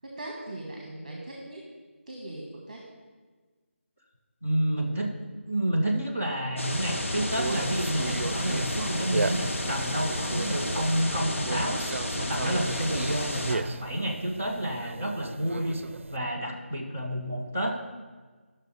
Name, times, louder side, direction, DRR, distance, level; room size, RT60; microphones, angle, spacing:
voice 1, 0.0-1.7 2.1-2.9, right 1 dB, 35° right, -1 dB, 1.1 m, -40 dB
voice 2, 4.4-5.1 5.5-11.8 12.2-15.8 16.1-17.8, right 1 dB, 10° left, -3 dB, 0.4 m, -29 dB
sound 1, 6.6-13.6, left 1 dB, 80° left, 1.2 m, -31 dB
Conversation, 7.3-16.2, right 3 dB, 75° right, 0.4 m, -36 dB
10.5 x 6.2 x 4.1 m, 1.4 s
figure-of-eight pair, 180°, 7 cm